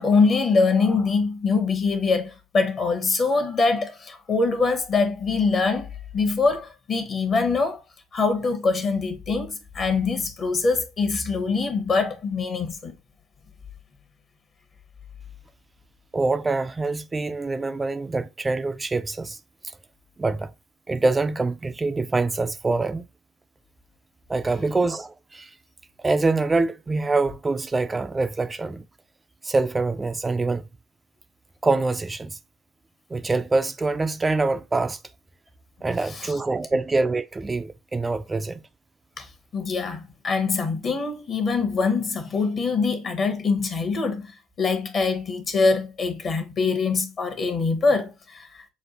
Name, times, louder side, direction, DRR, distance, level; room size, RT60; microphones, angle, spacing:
voice 1, 0.0-7.8 8.1-13.0 36.1-36.3 39.2-39.3 39.5-44.3 44.6-48.5, left 4 dB, 40° left, 1.0 m, -23 dB
voice 2, 16.1-19.4 20.2-20.5 20.9-23.1 24.3-25.5 26.0-28.8 29.4-30.6 31.6-32.4 33.1-35.0 35.8-38.6, right 3 dB, 20° right, 0.4 m, -25 dB
6.2 x 2.3 x 2.8 m
figure-of-eight pair, 60°, 0 cm